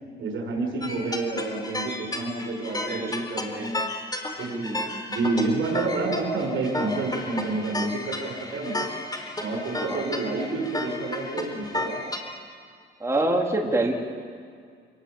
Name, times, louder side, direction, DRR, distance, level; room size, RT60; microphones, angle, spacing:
voice 1, 0.2-3.8 4.4-4.8 5.1-8.9 9.4-12.0, right 3 dB, 70° right, 2 dB, 7.2 m, -29 dB
sound 1, 0.8-12.2, left 2 dB, 20° left, 4.3 m, -33 dB
voice 2, 2.7-3.1 3.5-3.7 4.5-4.8 9.7-10.1 13.0-13.9, right 2 dB, 15° right, -1 dB, 3.6 m, -27 dB
28.0 x 19.5 x 8.8 m, 2.1 s
cardioid pair, 90°, 20 cm